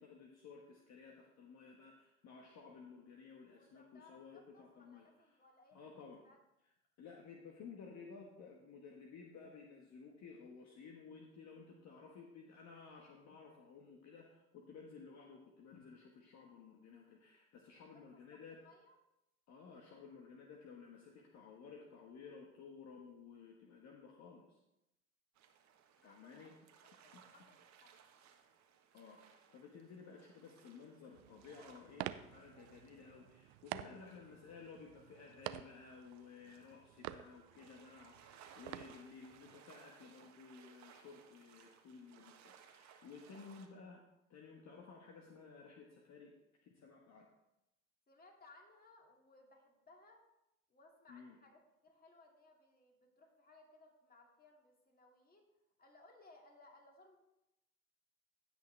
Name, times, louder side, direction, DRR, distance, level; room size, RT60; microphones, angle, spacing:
voice 1, 0.0-5.1 5.7-6.2 7.0-18.6 19.5-24.6 26.0-26.5 27.1-27.2 28.9-44.0 44.3-46.3 46.6-47.3 51.1-51.4, left 5 dB, 50° left, 0 dB, 1.4 m, -55 dB
voice 2, 3.5-5.8 6.2-6.4 17.7-18.2 18.5-19.0 26.0-26.5 27.0-28.0 43.3-43.5 48.1-50.2 50.7-55.5 55.8-57.2, left 2 dB, 25° left, 1 dB, 2.5 m, -64 dB
sound 1, 25.3-43.7, right 8 dB, 50° right, 1.4 m, -64 dB
sound 2, 31.1-39.6, right 15 dB, 70° right, 0.6 m, -50 dB
16.0 x 6.1 x 3.3 m, 0.88 s
hypercardioid pair, 80°, 36 cm